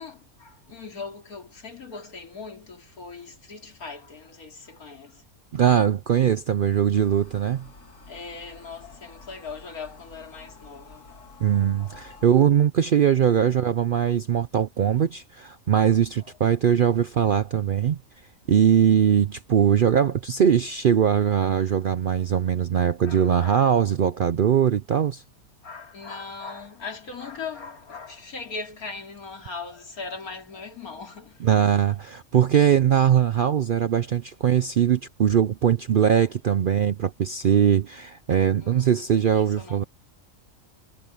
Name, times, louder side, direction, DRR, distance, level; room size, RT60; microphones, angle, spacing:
voice 1, 0.0-5.2 7.9-12.0 16.2-16.4 21.3-21.4 23.0-23.7 25.6-31.5 38.6-39.9, left 4 dB, 85° left, 3.2 m, -40 dB
voice 2, 5.5-7.7 11.4-18.0 18.5-25.2 31.4-39.8, right 9 dB, 65° right, 0.5 m, -21 dB
sound 1, 6.9-12.4, left 3 dB, 65° left, 2.6 m, -49 dB
omnidirectional pair, 1.5 m